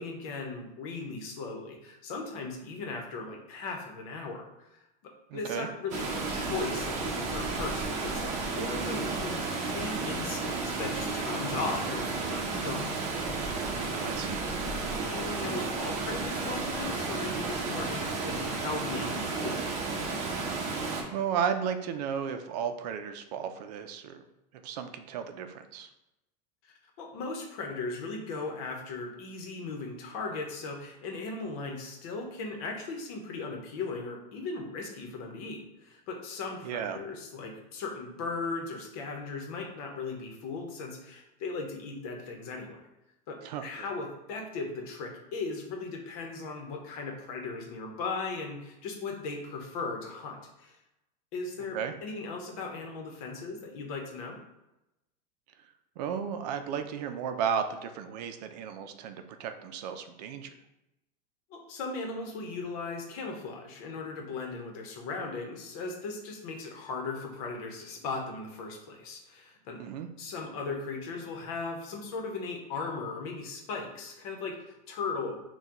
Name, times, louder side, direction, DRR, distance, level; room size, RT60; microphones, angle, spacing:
voice 1, 0.0-4.7 5.0-13.0 15.0-19.7 26.6-42.8 43.3-50.8 51.3-54.4 61.5-69.8 70.2-75.3, left 4 dB, 60° left, 2 dB, 1.0 m, -37 dB
voice 2, 5.3-5.7 13.6-14.5 21.1-24.2 24.6-25.9 36.6-37.0 43.4-43.9 51.7-51.9 56.0-60.5 69.8-70.1, right 7 dB, 75° right, 8 dB, 0.5 m, -34 dB
Water, 5.9-21.0, right 3 dB, 35° right, 0.7 m, -32 dB
5.6 x 2.3 x 3.0 m, 0.91 s
supercardioid pair, 145°, 21 cm